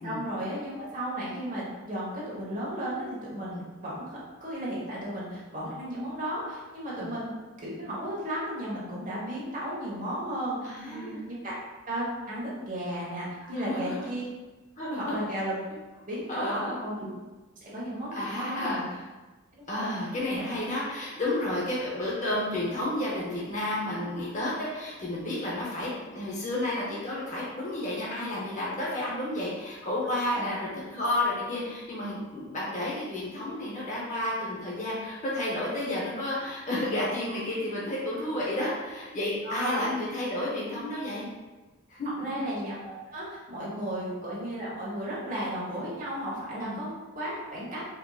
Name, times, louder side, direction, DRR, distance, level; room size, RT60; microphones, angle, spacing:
voice 1, 0.0-11.5 11.9-14.2 15.0-15.5 16.1-17.1 17.6-18.9 19.6-20.4 30.3-30.5 38.6-38.7 39.4-39.9 42.2-47.8, right 1 dB, 40° right, -7 dB, 1.3 m, -34 dB
voice 2, 10.7-11.2 13.5-14.1 14.8-15.2 16.3-16.8 18.1-19.0 19.7-41.3 41.9-42.2 43.9-44.1 46.6-46.8, left 1 dB, 35° left, -6 dB, 0.7 m, -31 dB
4.4 x 2.8 x 2.4 m, 1.2 s
head